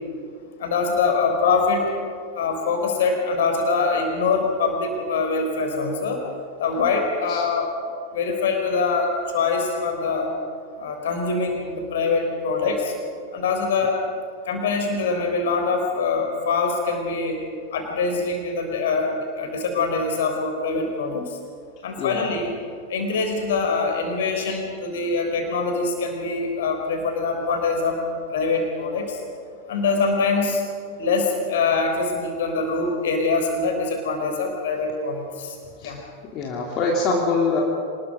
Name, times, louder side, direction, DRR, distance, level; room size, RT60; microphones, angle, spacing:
voice 1, 0.6-1.8 2.3-6.2 6.6-7.7 8.1-10.3 10.8-12.9 13.3-14.0 14.5-17.4 17.7-21.4 21.8-22.5 22.9-28.0 28.3-29.2 29.7-30.6 31.0-35.6 35.8-36.0, left 4 dB, 60° left, 3 dB, 4.1 m, -24 dB
voice 2, 36.3-37.6, left 3 dB, 35° left, -2 dB, 2.7 m, -24 dB
26.0 x 20.0 x 5.1 m, 2.3 s
figure-of-eight pair, 90°, 0 cm